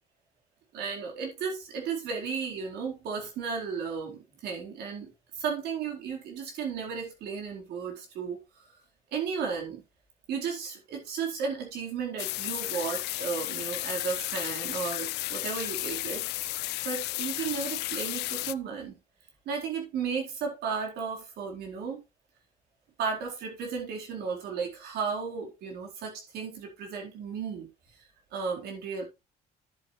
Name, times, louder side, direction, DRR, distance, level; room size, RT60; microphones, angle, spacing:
voice 1, 0.7-8.7 9.1-9.8 10.3-16.5 16.8-19.0 19.5-22.0 23.0-27.7 28.3-29.0, right 6 dB, 75° right, 4.2 m, -34 dB
sound 1, 12.2-18.5, left 19 dB, 80° left, 0.4 m, -33 dB
10.5 x 8.1 x 3.2 m
cardioid pair, 110°, 17 cm